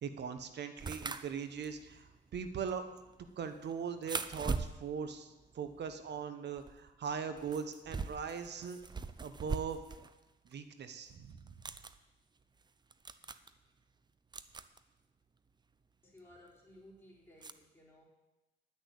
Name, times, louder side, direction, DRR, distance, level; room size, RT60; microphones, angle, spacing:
voice 1, 0.0-2.8 3.4-8.8 9.2-9.8 10.5-11.4, right 6 dB, 60° right, 9 dB, 1.1 m, -40 dB
sound 1, 0.8-6.3 6.6-10.1 10.5-10.6 11.4-11.9 12.6-12.7 12.9-13.5 14.3-14.8 16.2-16.3 17.4-17.5, right 4 dB, 20° right, 0.5 m, -42 dB
voice 2, 16.0-18.0, left 1 dB, 10° left, -4 dB, 3.9 m, -58 dB
10.5 x 6.4 x 8.4 m, 1.1 s
cardioid pair, 90°, 20 cm